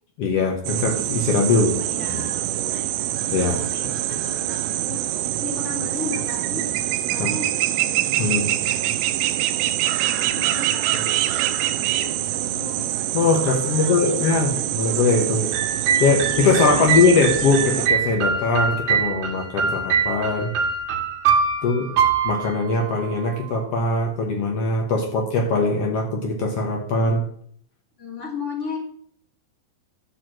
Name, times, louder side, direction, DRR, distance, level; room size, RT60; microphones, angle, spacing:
voice 1, 0.2-1.7 2.1-2.2 3.3-3.6 7.2-7.3 8.2-8.5 13.1-15.5 16.0-20.5 21.6-21.9 22.2-27.2, left 3 dB, 80° left, 1 dB, 1.3 m, -21 dB
sound 1, 0.6-17.9, right 13 dB, 80° right, 2.4 m, -25 dB
voice 2, 1.5-3.1 3.5-5.0 5.3-6.7 7.1-8.8 9.2-9.7 10.1-12.8 13.7-14.6 16.7-17.0 28.0-28.8, left 4 dB, 20° left, -1 dB, 2.6 m, -36 dB
sound 2, 15.5-23.5, right 6 dB, 60° right, 2.5 m, -23 dB
13.5 x 4.6 x 7.7 m, 0.64 s
omnidirectional pair, 4.9 m